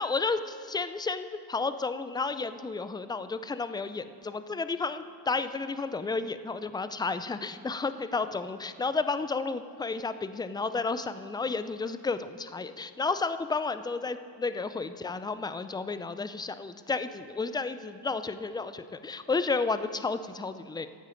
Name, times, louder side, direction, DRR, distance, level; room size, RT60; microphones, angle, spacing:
voice 1, 0.0-20.9, left 4 dB, 10° left, 12 dB, 0.4 m, -32 dB
13.5 x 8.7 x 5.1 m, 2.2 s
cardioid pair, 85°, 45 cm